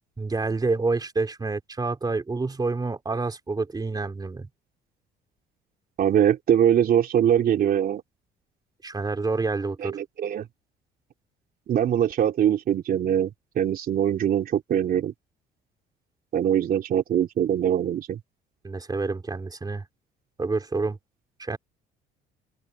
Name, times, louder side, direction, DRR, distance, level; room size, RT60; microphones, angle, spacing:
voice 1, 0.2-4.5 8.8-10.0 18.6-19.8 20.4-21.0 21.4-21.6, right 3 dB, 20° right, 3.5 m, -28 dB
voice 2, 6.0-8.0 9.8-10.5 11.7-15.1 16.3-18.2, right 10 dB, 55° right, 3.0 m, -22 dB
open air
supercardioid pair, 80°, 18 cm